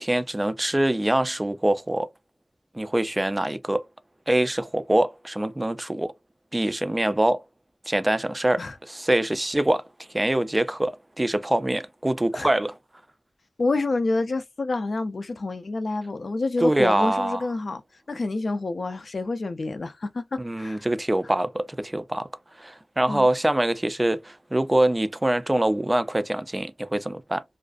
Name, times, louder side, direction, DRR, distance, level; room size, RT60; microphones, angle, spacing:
voice 1, 0.0-2.1 2.7-3.8 4.3-6.1 6.5-7.4 7.9-9.8 10.1-12.7 16.6-17.4 20.4-22.3 22.6-27.4, right 1 dB, 20° right, 0.3 m, -24 dB
voice 2, 13.6-17.8 18.1-20.8 23.1-23.3, left 3 dB, 60° left, 0.4 m, -28 dB
2.4 x 2.3 x 2.3 m
wide cardioid pair, 80°, 0 cm